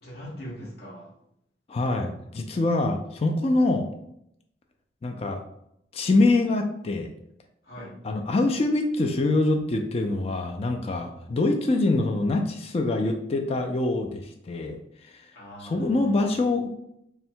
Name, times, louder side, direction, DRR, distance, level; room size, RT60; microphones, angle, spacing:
voice 1, 0.0-1.1 7.6-8.0 15.3-16.4, equal, 55° left, -5 dB, 1.1 m, -41 dB
voice 2, 1.7-3.9 5.0-5.4 5.9-7.1 8.0-14.8 15.6-16.7, left 2 dB, 35° left, 4 dB, 0.3 m, -24 dB
3.4 x 2.2 x 4.4 m, 0.75 s
head